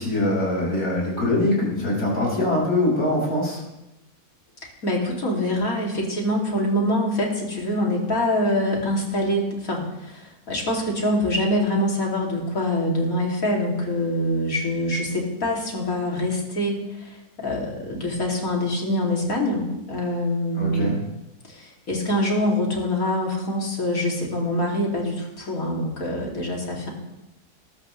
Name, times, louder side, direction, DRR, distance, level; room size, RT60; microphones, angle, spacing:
voice 1, 0.0-3.6 20.5-21.0, left 1 dB, 75° left, -4 dB, 6.2 m, -23 dB
voice 2, 4.8-17.2 17.4-21.0 21.5-26.9, left 1 dB, 60° left, -2 dB, 3.2 m, -25 dB
20.0 x 13.0 x 3.3 m, 0.95 s
omnidirectional pair, 1.7 m